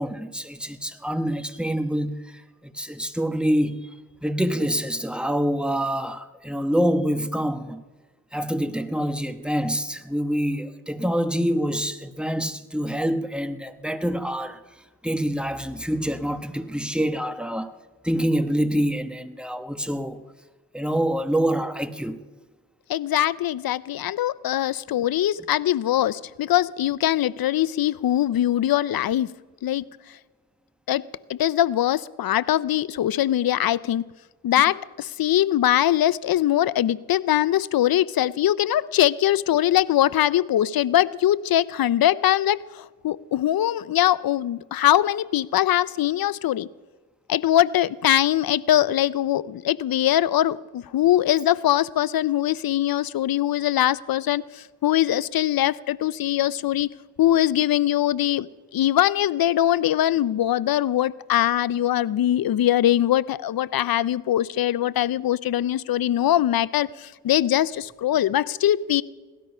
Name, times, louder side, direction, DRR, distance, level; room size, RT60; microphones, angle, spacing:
voice 1, 0.0-2.2 2.6-3.9 4.2-7.8 8.3-14.6 15.0-17.7 18.0-20.2 20.7-22.2, equal, 5° right, 1.1 m, -26 dB
voice 2, 22.9-29.3 29.6-29.8 30.9-31.0 31.3-34.0 34.4-46.7 47.3-56.9 57.2-58.5 58.7-69.0, left 12 dB, 85° left, 0.6 m, -22 dB
17.5 x 13.0 x 5.5 m
cardioid pair, 70°, 35 cm